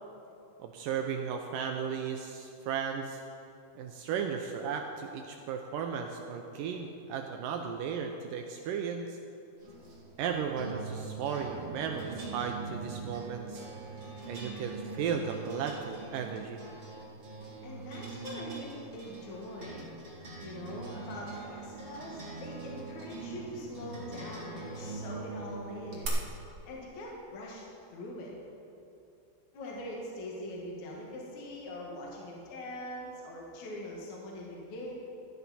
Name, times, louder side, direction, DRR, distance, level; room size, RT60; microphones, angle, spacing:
voice 1, 0.6-3.2 3.8-9.2 10.2-13.7 14.3-16.6, right 6 dB, 80° right, 4 dB, 2.0 m, -35 dB
sound 1, 9.6-26.1, right 4 dB, 35° right, 1.1 m, -43 dB
voice 2, 17.6-19.9 20.4-26.2 26.7-27.6 27.9-28.3 29.5-34.9, left 1 dB, 55° left, -3 dB, 2.8 m, -42 dB
15.5 x 12.0 x 4.2 m, 2.7 s
omnidirectional pair, 4.4 m